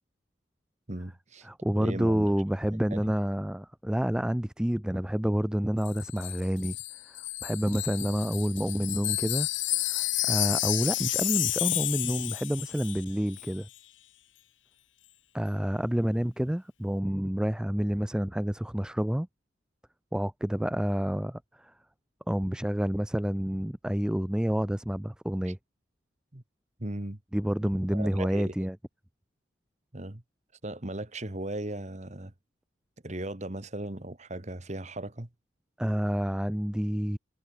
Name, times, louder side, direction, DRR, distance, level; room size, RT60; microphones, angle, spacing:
voice 1, 0.9-2.3 2.9-3.1 25.4-25.5 26.3-26.4 26.8-27.2 27.6-28.7 29.9-30.2 30.6-32.3 33.0-35.3, right 1 dB, 35° right, 1.7 m, -37 dB
voice 2, 1.4-6.8 7.0-7.2 7.4-9.5 9.8-13.7 15.3-19.3 20.1-21.7 22.3-25.6 27.3-28.8 35.8-37.2, equal, 5° right, 0.3 m, -29 dB
Wind chime, 5.8-13.1 13.3-13.5, left 16 dB, 75° left, 1.7 m, -31 dB
head